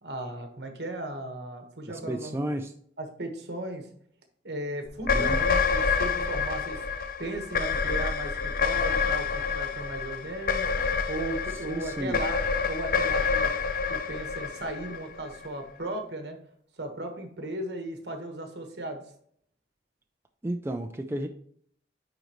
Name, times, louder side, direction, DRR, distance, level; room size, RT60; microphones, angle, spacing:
voice 1, 0.0-2.5 3.0-3.9 4.4-6.8 7.2-10.7 11.1-12.4 12.7-13.5 13.9-16.4 16.8-19.0, right 1 dB, 65° right, 4 dB, 1.3 m, -36 dB
voice 2, 1.9-2.7 5.1-5.4 11.7-12.2 20.4-21.3, right 1 dB, 15° right, 5 dB, 0.4 m, -32 dB
sound 1, 5.0-15.5, left 5 dB, 50° left, 0.5 m, -28 dB
9.9 x 3.9 x 3.0 m, 0.63 s
head